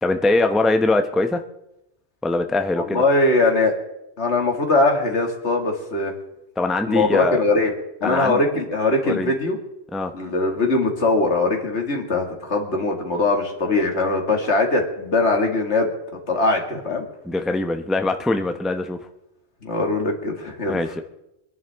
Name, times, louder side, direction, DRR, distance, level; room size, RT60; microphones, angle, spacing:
voice 1, 0.0-1.4 2.2-3.0 6.6-7.4 8.0-8.4 9.1-9.3 9.9-10.1 17.3-19.0 20.7-21.0, left 2 dB, ahead, 7 dB, 0.6 m, -22 dB
voice 2, 2.8-3.7 4.2-6.1 6.9-7.7 8.0-9.6 10.1-15.9 16.3-17.0 19.6-20.8, left 2 dB, 80° left, 2 dB, 2.4 m, -21 dB
25.0 x 11.0 x 3.5 m, 0.87 s
omnidirectional pair, 1.1 m